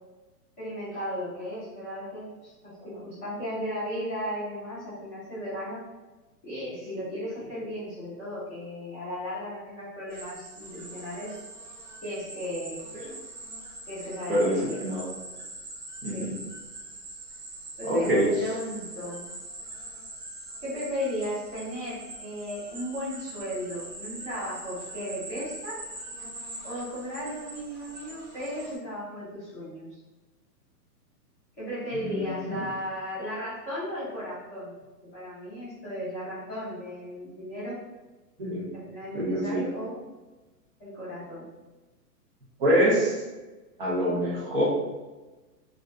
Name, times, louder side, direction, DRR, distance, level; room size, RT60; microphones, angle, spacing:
voice 1, 0.6-5.8 6.4-11.4 12.0-12.8 13.9-14.8 16.1-16.3 17.8-19.3 20.6-25.8 26.6-29.8 31.6-34.7 35.1-37.8 38.7-40.0 40.8-41.4, equal, 10° left, -18 dB, 0.5 m, -35 dB
sound 1, 10.1-28.8, right 1 dB, 60° right, 1.1 m, -43 dB
voice 2, 14.3-15.1 16.0-16.3 17.8-18.3 32.0-32.5 38.4-38.7 39.1-39.6 42.6-43.2 43.8-44.6, equal, 35° right, -5 dB, 0.6 m, -25 dB
2.5 x 2.3 x 2.2 m, 1.2 s
hypercardioid pair, 170°, 48 cm